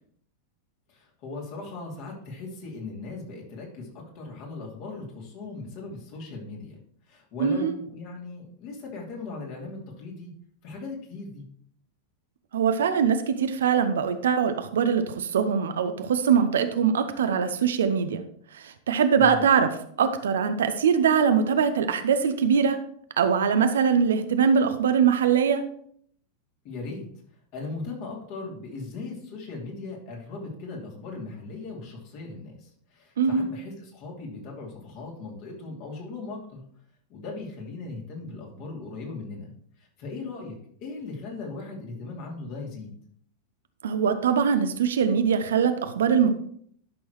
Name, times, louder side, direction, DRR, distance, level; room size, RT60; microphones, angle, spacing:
voice 1, 0.9-6.7 7.1-10.3 10.6-11.4 19.2-19.4 26.6-27.1 27.5-36.6 37.1-39.5 39.8-42.9, left 3 dB, 45° left, -1 dB, 2.9 m, -38 dB
voice 2, 7.4-7.7 12.5-18.2 18.5-19.7 20.0-22.8 23.2-25.6 33.2-33.5 43.8-46.3, right 7 dB, 65° right, 9 dB, 0.8 m, -22 dB
11.5 x 6.3 x 3.1 m, 0.63 s
figure-of-eight pair, 90°, 0 cm